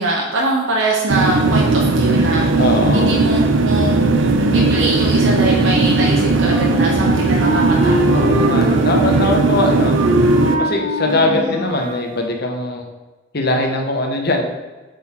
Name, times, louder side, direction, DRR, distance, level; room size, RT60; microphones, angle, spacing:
voice 1, 0.0-4.0 4.5-8.2 11.0-11.7, right 2 dB, 90° right, -2 dB, 1.0 m, -23 dB
sound 1, 1.1-10.5, right 3 dB, 75° right, 0.6 m, -16 dB
voice 2, 2.6-3.1 8.1-10.0 10.6-12.9 13.3-14.4, left 2 dB, 55° left, 2 dB, 1.0 m, -20 dB
Wind instrument woodwind instrument, 6.3-12.1, equal, 40° right, 1.7 m, -23 dB
7.9 x 4.0 x 4.4 m, 1.2 s
head